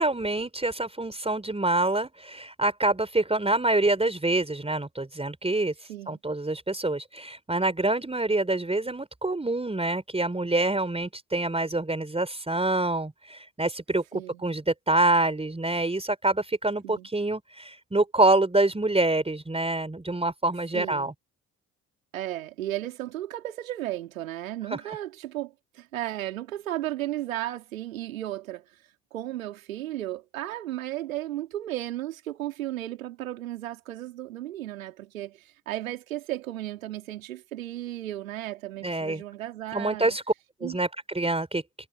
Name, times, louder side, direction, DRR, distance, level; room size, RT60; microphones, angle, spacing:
voice 1, 0.0-14.0 14.4-21.1 24.7-24.8 38.8-39.2 39.7-40.2 40.6-40.9 41.1-41.6, right 2 dB, 15° right, 4.3 m, -26 dB
voice 2, 20.7-21.1 22.1-40.1 40.6-40.8, right 14 dB, 85° right, 3.1 m, -35 dB
hypercardioid pair, 45°, 39 cm